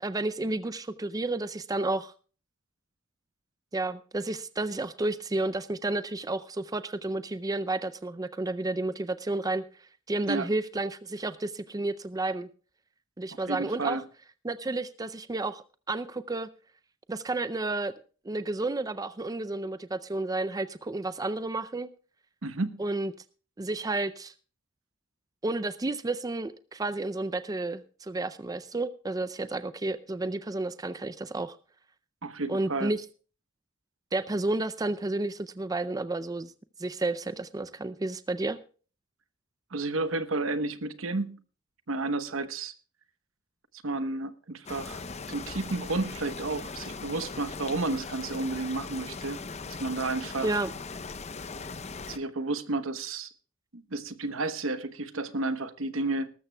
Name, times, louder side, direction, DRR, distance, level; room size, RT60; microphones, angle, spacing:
voice 1, 0.0-2.1 3.7-9.6 10.1-12.5 13.2-14.0 14.4-16.5 17.1-17.9 18.2-21.9 22.8-23.1 23.6-24.3 25.4-31.6 32.5-33.0 34.1-36.5 36.8-38.6 50.4-50.7, right 2 dB, 20° right, 13 dB, 0.5 m, -31 dB
voice 2, 13.5-14.0 22.4-22.8 32.2-32.9 39.7-41.3 41.9-42.7 43.8-45.0 45.3-49.4 49.8-50.5 52.1-53.3 53.7-56.3, right 2 dB, 80° right, 11 dB, 1.0 m, -31 dB
sound 1, 44.7-52.2, left 4 dB, 35° left, 0.7 m, -39 dB
19.5 x 13.0 x 2.2 m, 0.37 s
head